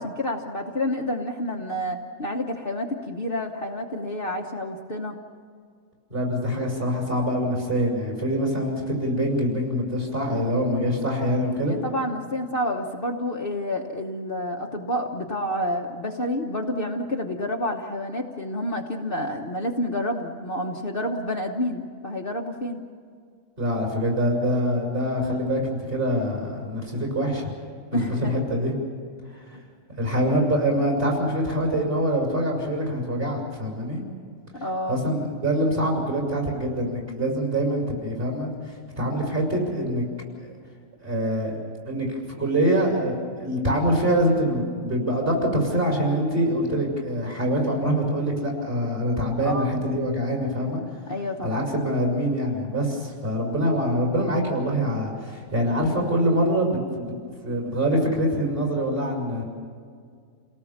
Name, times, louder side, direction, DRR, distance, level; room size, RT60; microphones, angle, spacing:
voice 1, 0.0-5.2 11.6-22.8 27.9-28.4 29.5-29.6 34.6-35.0 49.4-49.9 51.1-51.7, left 1 dB, 40° left, 0 dB, 1.3 m, -29 dB
voice 2, 6.1-11.7 23.6-27.5 27.9-28.7 29.9-34.0 34.9-40.0 41.0-41.6 41.8-50.8 51.4-57.1 57.4-59.4, equal, 35° right, -1 dB, 6.1 m, -24 dB
29.5 x 18.5 x 7.3 m, 2.1 s
omnidirectional pair, 1.6 m